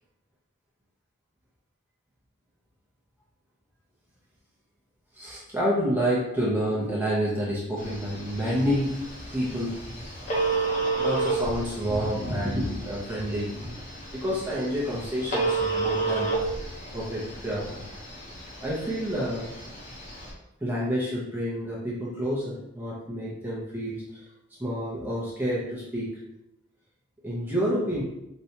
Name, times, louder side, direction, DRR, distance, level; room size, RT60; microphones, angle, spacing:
voice 1, 5.1-10.2 10.6-10.7 11.0-13.8 14.1-16.3 16.9-17.8 18.6-19.5 20.6-24.2 24.6-26.1 27.2-28.0, equal, 10° right, -7 dB, 0.6 m, -29 dB
Telephone, 7.8-20.3, right 3 dB, 40° left, 0.8 m, -31 dB
4.2 x 2.3 x 2.8 m, 0.87 s
head